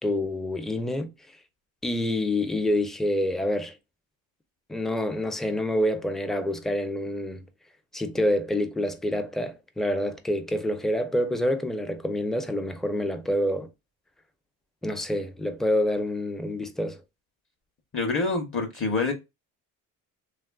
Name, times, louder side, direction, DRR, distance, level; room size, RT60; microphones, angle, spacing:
voice 1, 0.0-1.1 1.8-3.8 4.7-7.5 7.9-13.7 14.8-17.0, left 1 dB, ahead, 0.4 m, -27 dB
voice 2, 17.9-19.1, left 3 dB, 35° left, 0.8 m, -26 dB
3.0 x 2.3 x 2.2 m
cardioid pair, 100°, 36 cm